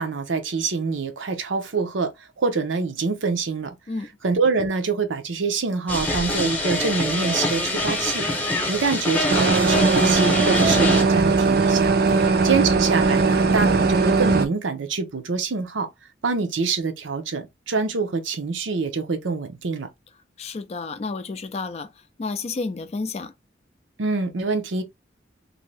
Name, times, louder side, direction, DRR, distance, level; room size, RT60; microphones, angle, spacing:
voice 1, 0.0-2.1 2.4-3.7 4.2-8.2 8.7-11.9 12.4-15.9 16.2-19.9 24.0-24.8, right 4 dB, 85° right, 0.7 m, -25 dB
sound 1, 5.9-11.0, left 1 dB, 10° left, 0.8 m, -24 dB
sound 2, 9.3-14.5, right 4 dB, 50° right, 0.4 m, -19 dB
voice 2, 20.4-23.3, left 3 dB, 35° left, 0.3 m, -31 dB
2.7 x 2.6 x 3.2 m
head